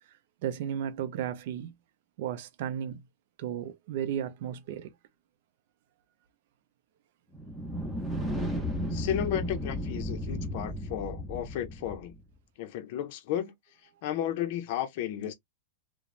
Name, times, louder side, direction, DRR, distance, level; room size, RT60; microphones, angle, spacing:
voice 1, 0.4-1.7 2.2-3.0 3.4-4.9, right 9 dB, 55° right, 0.4 m, -34 dB
sound 1, 7.3-12.2, equal, ahead, 0.7 m, -34 dB
voice 2, 8.9-12.1 12.6-13.5 14.0-15.3, left 11 dB, 45° left, 0.5 m, -33 dB
3.0 x 2.0 x 2.3 m
supercardioid pair, 155°, 0 cm